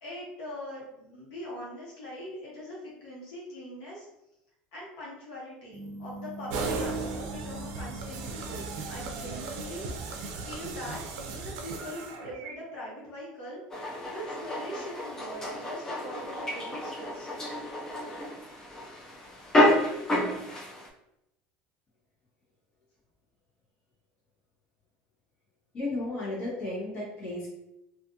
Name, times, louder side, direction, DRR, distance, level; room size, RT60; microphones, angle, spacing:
voice 1, 0.0-4.1 4.7-9.8 10.4-13.6 14.1-17.3, left 1 dB, 75° left, -6 dB, 1.1 m, -42 dB
sound 1, 5.7-11.0, right 1 dB, 30° right, 0.7 m, -45 dB
sound 2, 6.5-12.5, right 4 dB, 80° right, 0.4 m, -36 dB
sound 3, 13.7-20.9, left 1 dB, 15° left, 0.4 m, -30 dB
voice 2, 25.7-27.5, left 2 dB, 30° left, -7 dB, 1.1 m, -33 dB
2.5 x 2.4 x 2.6 m, 0.86 s
cardioid pair, 165°, 3 cm